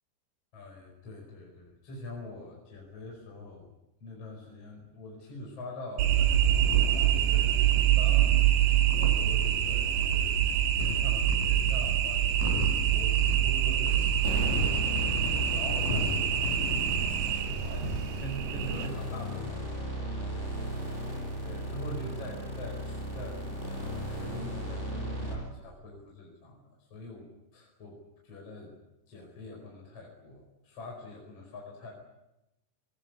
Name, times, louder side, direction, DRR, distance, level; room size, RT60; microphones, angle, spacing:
voice 1, 0.5-3.7 4.0-16.9 17.3-20.3 21.4-28.8 29.1-31.9, left 1 dB, 30° left, 0 dB, 5.6 m, -44 dB
sound 1, 6.0-18.9, right 11 dB, 65° right, 3.4 m, -26 dB
sound 2, 6.1-17.4, left 4 dB, 50° left, 4.7 m, -38 dB
sound 3, 14.2-25.3, right 1 dB, 15° right, 7.1 m, -35 dB
22.0 x 19.5 x 9.6 m, 0.92 s
omnidirectional pair, 5.9 m